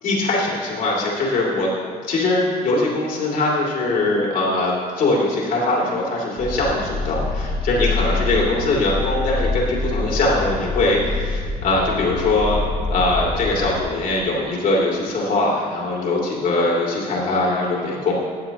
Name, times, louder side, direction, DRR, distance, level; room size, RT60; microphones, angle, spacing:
voice 1, 0.0-1.7 2.1-12.6 12.9-18.1, left 2 dB, 60° left, -4 dB, 2.6 m, -21 dB
sound 1, 6.4-13.8, left 3 dB, ahead, 1.4 m, -26 dB
14.0 x 8.1 x 3.0 m, 2.1 s
cardioid pair, 110°, 17 cm